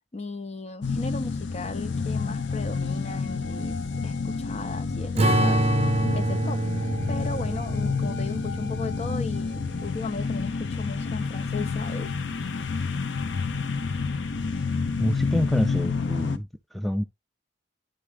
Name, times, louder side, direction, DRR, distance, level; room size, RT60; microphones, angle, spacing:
voice 1, 0.1-12.1, left 3 dB, 35° left, 0.7 m, -36 dB
sound 1, 0.8-16.4, left 4 dB, 75° left, 0.6 m, -29 dB
Strum, 5.2-9.8, right 1 dB, 35° right, 0.8 m, -26 dB
voice 2, 15.0-17.0, equal, ahead, 0.4 m, -27 dB
10.5 x 3.6 x 3.3 m
head